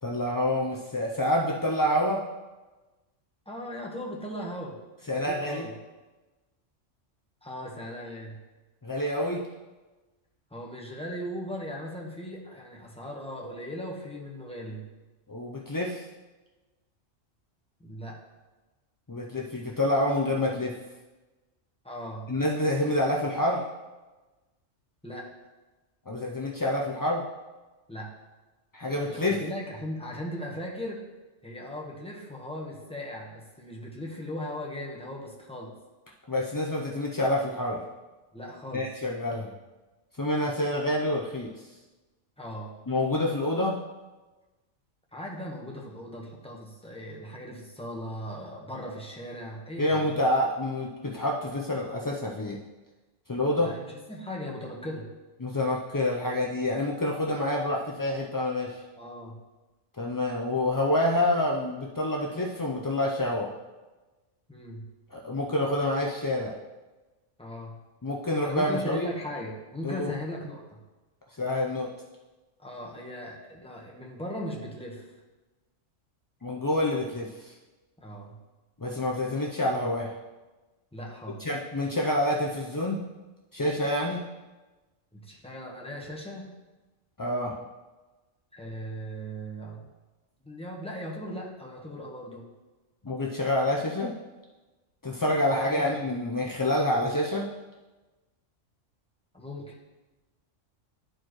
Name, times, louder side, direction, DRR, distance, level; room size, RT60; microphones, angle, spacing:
voice 1, 0.0-2.2 5.1-5.6 8.8-9.4 15.3-16.0 19.1-20.7 22.3-23.6 26.1-27.2 28.7-29.4 36.3-37.8 38.7-39.5 40.2-41.5 42.9-43.8 49.8-52.6 53.3-53.7 55.4-58.8 60.0-63.5 65.1-66.5 68.0-69.1 69.8-70.1 71.4-71.9 76.4-77.5 78.8-80.1 81.4-83.0 83.5-84.2 87.2-87.5 93.0-94.1 95.0-97.5, left 1 dB, 35° left, -3 dB, 0.3 m, -27 dB
voice 2, 3.5-4.8 5.1-5.7 7.4-8.4 10.5-14.9 17.8-18.2 21.8-22.3 25.0-25.3 27.9-28.1 29.1-31.0 31.4-35.7 38.3-38.9 42.4-42.7 45.1-50.1 53.6-55.1 59.0-59.4 64.5-64.9 67.4-67.8 68.4-70.8 72.6-75.1 78.0-78.4 80.9-81.4 85.1-86.5 88.5-89.8 90.4-92.5 95.6-95.9 99.3-99.7, equal, 5° left, -3 dB, 1.1 m, -38 dB
12.0 x 4.5 x 3.1 m, 1.2 s
omnidirectional pair, 1.3 m